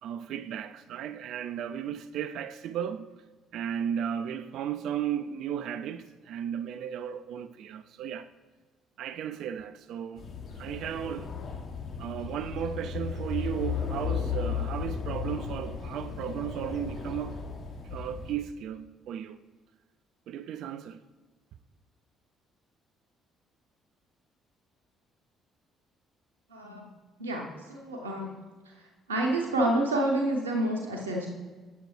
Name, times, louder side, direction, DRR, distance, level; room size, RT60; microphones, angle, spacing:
voice 1, 0.0-3.1 3.5-8.3 9.0-10.2 10.6-11.3 12.0-17.4 17.9-19.4 20.3-21.0, right 9 dB, 60° right, 0.3 m, -35 dB
sound 1, 10.2-18.3, left 6 dB, 50° left, 1.1 m, -35 dB
voice 2, 26.5-26.9 27.2-28.3 29.1-31.3, right 1 dB, 85° right, 0.8 m, -28 dB
8.0 x 6.6 x 3.2 m
figure-of-eight pair, 45°, 0 cm